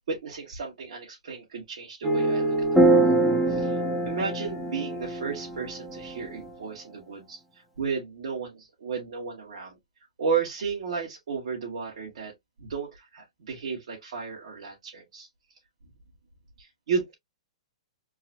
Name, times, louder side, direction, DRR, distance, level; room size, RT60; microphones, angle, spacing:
voice 1, 0.1-3.1 3.5-3.8 4.0-7.4 7.8-9.8 10.2-12.3 12.6-15.3 16.6-17.1, right 5 dB, 75° right, 2.4 m, -33 dB
sound 1, 2.0-6.5, right 2 dB, ahead, 1.4 m, -24 dB
4.6 x 3.2 x 2.9 m
hypercardioid pair, 125°, 3 cm